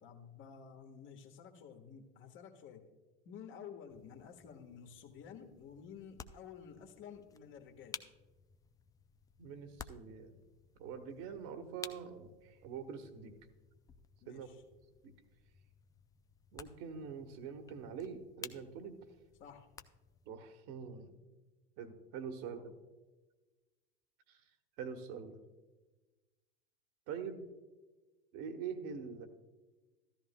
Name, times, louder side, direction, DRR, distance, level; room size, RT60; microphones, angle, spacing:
voice 1, 0.0-2.9 3.2-8.1 14.2-14.6 19.4-19.7 22.4-22.7, left 7 dB, 40° left, 5 dB, 1.5 m, -52 dB
sound 1, 3.9-20.3, left 6 dB, 10° left, 0.3 m, -55 dB
voice 2, 9.4-10.3 10.8-13.4 14.2-14.5 15.0-15.1 16.5-19.0 20.2-21.1 21.8-22.7 24.3-24.4 24.8-25.4 27.1-27.5 28.3-29.3, right 6 dB, 50° right, 7 dB, 1.3 m, -44 dB
14.0 x 13.5 x 2.2 m, 1.2 s
hypercardioid pair, 85°, 30 cm